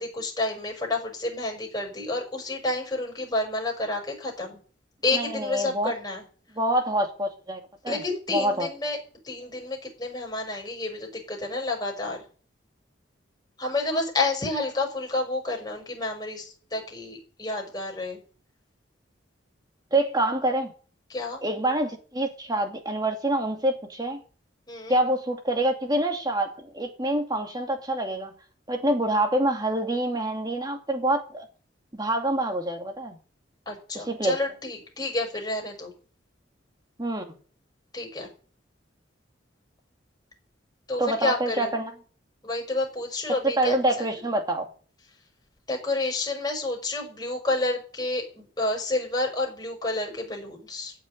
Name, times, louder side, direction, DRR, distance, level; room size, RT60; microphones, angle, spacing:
voice 1, 0.0-4.6 5.0-6.2 7.9-9.0 9.2-12.2 13.6-18.2 21.1-21.4 24.7-25.0 33.7-35.9 37.9-38.3 40.9-41.7 42.4-44.2 45.7-50.9, left 2 dB, 20° left, 5.7 m, -29 dB
voice 2, 5.1-5.9 6.6-8.0 8.3-8.7 19.9-20.7 21.4-24.2 24.9-28.3 28.7-31.5 31.9-33.2 33.9-34.4 37.0-37.4 41.0-41.9 43.4-44.7, right 1 dB, 20° right, 2.5 m, -26 dB
14.5 x 7.4 x 9.8 m
head